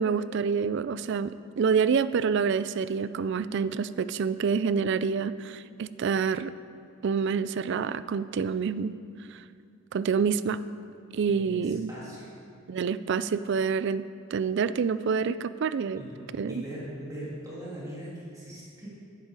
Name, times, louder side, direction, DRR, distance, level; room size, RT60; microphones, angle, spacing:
voice 1, 0.0-6.5 7.0-9.0 9.9-10.6 11.1-11.9 12.7-14.1 14.3-16.0 16.3-16.6, right 6 dB, 55° right, 15 dB, 0.3 m, -27 dB
voice 2, 11.3-12.3 16.0-18.9, right 1 dB, 15° right, -7 dB, 2.4 m, -41 dB
11.0 x 10.5 x 4.8 m, 2.4 s
head